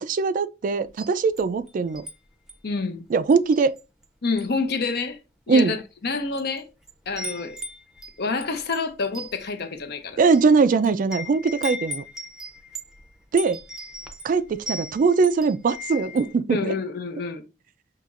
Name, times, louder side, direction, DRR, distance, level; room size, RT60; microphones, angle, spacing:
voice 1, 0.0-2.0 3.1-3.8 5.5-5.7 10.2-12.0 13.3-13.6 14.2-16.7, right 4 dB, 50° right, 0.3 m, -21 dB
Wind chime, 0.9-2.1 2.5-2.7 3.3-4.0 4.3-4.6 5.4-5.5 6.1-6.6 6.8-16.3, left 1 dB, 5° right, 0.6 m, -38 dB
voice 2, 2.6-3.0 4.2-5.2 5.5-5.8 6.0-6.7 7.1-7.6 8.2-10.2 16.5-17.4, left 4 dB, 60° left, 0.7 m, -27 dB
5.7 x 3.0 x 2.4 m
head